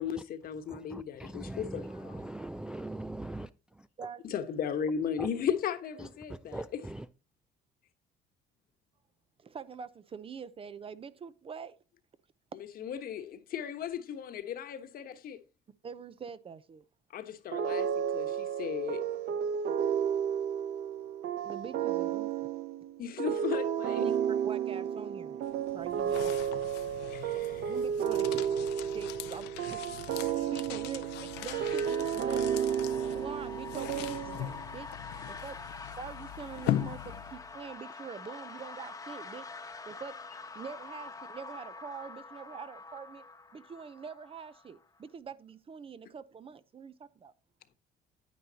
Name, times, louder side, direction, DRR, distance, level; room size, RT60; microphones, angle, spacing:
voice 1, 0.0-2.3 4.2-6.9 12.5-15.4 17.1-19.0 23.0-24.1 27.1-27.7, left 8 dB, 60° left, 1.3 m, -36 dB
voice 2, 0.7-3.5 5.2-5.3 6.5-7.0, right 1 dB, 5° right, 0.3 m, -40 dB
voice 3, 9.4-11.8 15.8-16.8 21.4-22.5 24.0-25.4 25.7-26.4 27.7-28.4 28.9-29.8 30.4-32.6 33.0-34.9 35.4-35.6 36.0-39.5 39.8-40.2 40.5-43.2 43.5-47.3, right 6 dB, 35° right, 0.7 m, -44 dB
sound 1, 17.5-34.7, right 8 dB, 70° right, 0.8 m, -32 dB
sound 2, 25.4-37.6, left 13 dB, 90° left, 0.7 m, -40 dB
sound 3, 31.3-45.0, left 4 dB, 20° left, 1.1 m, -46 dB
9.5 x 9.4 x 2.8 m
cardioid pair, 110°, 17 cm